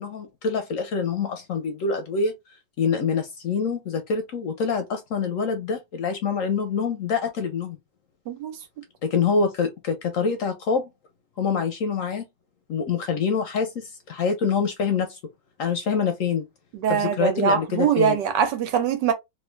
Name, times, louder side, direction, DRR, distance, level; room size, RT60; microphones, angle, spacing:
voice 1, 0.0-7.8 9.0-10.9 11.4-12.3 12.7-15.2 15.6-16.5 16.9-18.2, left 5 dB, 65° left, 0.8 m, -26 dB
voice 2, 8.3-8.6 16.7-19.1, right 7 dB, 85° right, 1.4 m, -23 dB
3.3 x 2.5 x 3.1 m
omnidirectional pair, 1.8 m